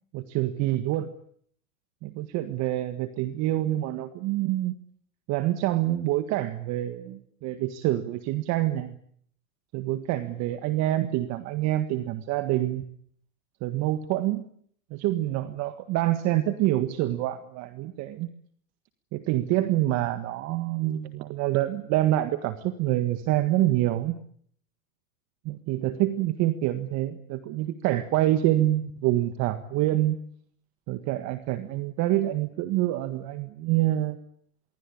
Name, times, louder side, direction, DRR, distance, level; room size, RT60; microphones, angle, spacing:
voice 1, 0.1-1.1 2.0-4.7 5.3-8.9 9.7-12.8 13.6-14.4 14.9-18.3 19.1-24.2 25.4-30.2 30.9-34.2, right 14 dB, 40° right, 10 dB, 1.7 m, -26 dB
26.5 x 23.0 x 8.7 m, 0.64 s
supercardioid pair, 135°, 42 cm